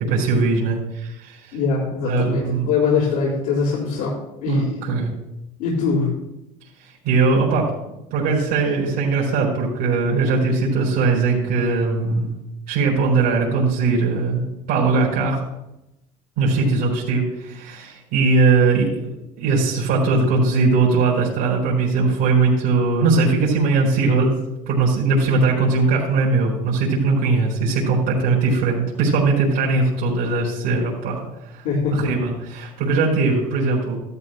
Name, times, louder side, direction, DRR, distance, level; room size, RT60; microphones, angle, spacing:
voice 1, 0.1-1.6 2.0-2.7 4.5-5.1 6.8-7.7 8.1-12.4 12.7-14.4 14.7-15.4 16.4-24.3 24.7-31.6 31.9-34.0, right 3 dB, 70° right, -5 dB, 3.9 m, -20 dB
voice 2, 1.5-4.9 5.6-6.1 31.6-32.1, left 4 dB, 80° left, -7 dB, 3.8 m, -22 dB
14.0 x 12.5 x 2.2 m, 0.90 s
hypercardioid pair, 80°, 18 cm